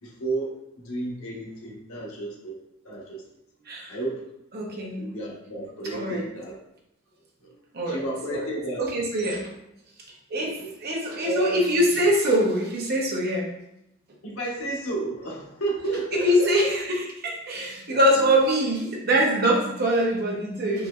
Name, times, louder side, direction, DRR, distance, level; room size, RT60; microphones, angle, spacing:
voice 1, 0.0-2.6 2.8-3.2 3.9-4.2 5.0-6.6 7.4-7.5 7.9-8.8 10.4-10.7 11.2-11.8 14.2-16.7 17.9-18.3, right 2 dB, 85° left, -3 dB, 1.0 m, -32 dB
voice 2, 4.5-5.1 5.8-6.2 7.7-8.0 8.3-8.5 8.8-9.5 10.3-13.5 16.1-20.9, equal, 50° right, -1 dB, 0.8 m, -23 dB
4.0 x 3.0 x 2.4 m, 0.85 s
head